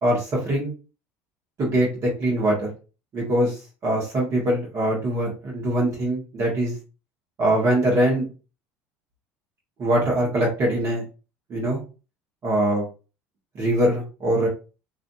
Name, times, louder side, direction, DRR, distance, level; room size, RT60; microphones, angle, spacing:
voice 1, 0.0-0.7 1.6-2.7 3.1-6.8 7.4-8.3 9.8-11.0 11.5-11.8 12.4-12.9 13.6-14.5, right 1 dB, 45° right, -3 dB, 1.5 m, -22 dB
3.2 x 2.6 x 2.6 m, 0.33 s
supercardioid pair, 100°, 7 cm